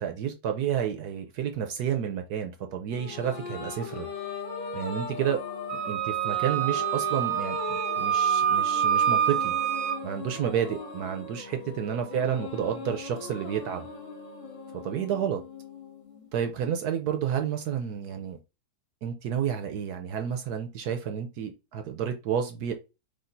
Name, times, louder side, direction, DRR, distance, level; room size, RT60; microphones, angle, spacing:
voice 1, 0.0-4.1 4.7-5.4 5.9-9.5 10.0-13.9 14.8-15.4 16.3-18.4 19.0-22.7, right 8 dB, 65° right, 1.0 m, -30 dB
Monastery Sounds, 2.9-16.5, left 4 dB, 85° left, 2.3 m, -39 dB
Wind instrument woodwind instrument, 5.7-10.0, right 10 dB, 85° right, 1.6 m, -26 dB
5.1 x 2.4 x 3.8 m
omnidirectional pair, 2.1 m